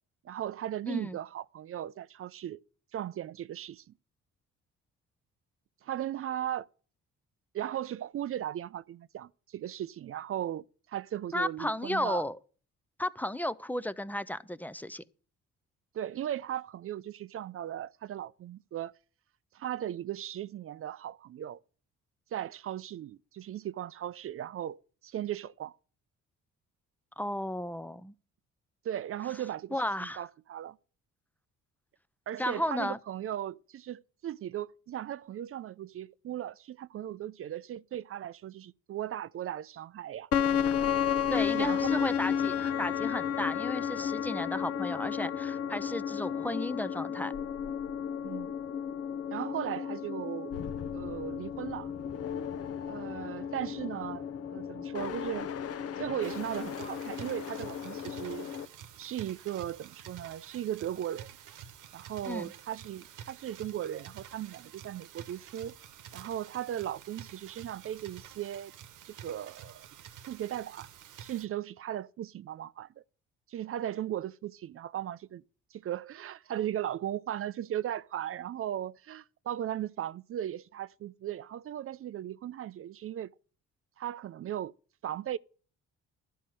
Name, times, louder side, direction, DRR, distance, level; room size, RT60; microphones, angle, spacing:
voice 1, 0.2-2.6 2.9-3.8 5.8-6.7 7.5-12.2 15.9-18.9 19.5-21.6 22.3-25.8 28.8-30.8 32.3-40.3 41.5-42.1 48.2-48.5 49.3-50.5 50.9-51.9 52.9-55.5 56.0-58.5 59.0-61.3 61.9-65.8 66.1-68.7 69.1-69.9 70.3-70.9 71.2-73.0 73.5-75.4 75.7-83.3 84.0-84.7 85.0-85.4, right 11 dB, 50° right, 0.4 m, -37 dB
voice 2, 0.9-1.2 11.3-12.4 13.0-15.0 27.2-28.1 29.7-30.2 32.4-33.0 41.3-47.3 62.3-62.5, left 1 dB, 5° left, 0.5 m, -34 dB
sound 1, 40.3-58.7, left 8 dB, 50° left, 0.7 m, -33 dB
sound 2, 56.2-71.4, right 9 dB, 80° right, 1.0 m, -50 dB
12.0 x 5.6 x 7.5 m
cardioid pair, 90°, 30 cm